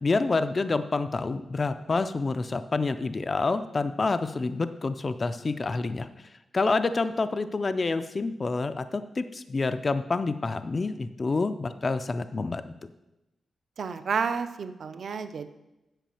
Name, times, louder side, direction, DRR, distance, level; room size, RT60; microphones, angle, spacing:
voice 1, 0.0-6.1 6.5-12.7, left 3 dB, 30° left, 10 dB, 0.3 m, -28 dB
voice 2, 13.8-15.5, right 5 dB, 55° right, 10 dB, 0.6 m, -30 dB
9.0 x 5.0 x 6.9 m, 0.95 s
wide cardioid pair, 175°, 0 cm